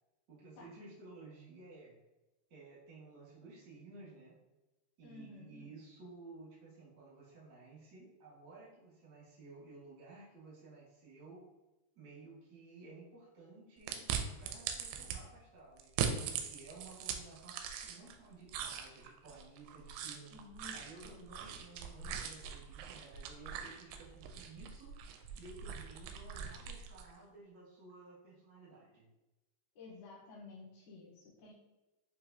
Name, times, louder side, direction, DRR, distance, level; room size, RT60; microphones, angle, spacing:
voice 1, 0.3-1.9 2.5-4.4 5.0-11.4 11.9-14.1 14.4-20.3 20.7-24.9 25.3-29.1, right 3 dB, 70° right, -7 dB, 1.0 m, -55 dB
voice 2, 5.0-5.7 20.3-20.8 21.0-21.3 29.8-31.5, left 3 dB, 75° left, -6 dB, 2.7 m, -53 dB
sound 1, 13.9-15.2 15.8-18.2 18.5-27.1, right 7 dB, 85° right, 2.5 m, -41 dB
7.1 x 2.6 x 2.7 m, 1.0 s
omnidirectional pair, 4.7 m